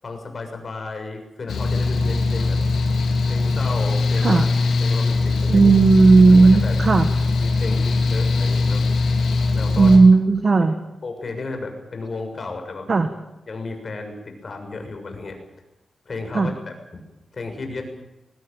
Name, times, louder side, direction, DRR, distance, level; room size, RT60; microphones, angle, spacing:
voice 1, 0.0-2.6 3.3-4.5 4.8-5.7 6.3-6.7 7.4-8.8 9.5-9.9 11.0-12.9 13.5-15.4 16.0-16.7 17.3-17.8, left 3 dB, 45° left, 4 dB, 7.0 m, -33 dB
Mechanical fan, 1.5-10.0, left 3 dB, 90° left, 4.1 m, -21 dB
voice 2, 5.5-7.1 9.8-10.7 12.9-13.1 16.3-16.5, right 3 dB, 45° right, 8 dB, 1.8 m, -14 dB
21.5 x 19.5 x 9.1 m, 0.96 s
cardioid pair, 95°, 0 cm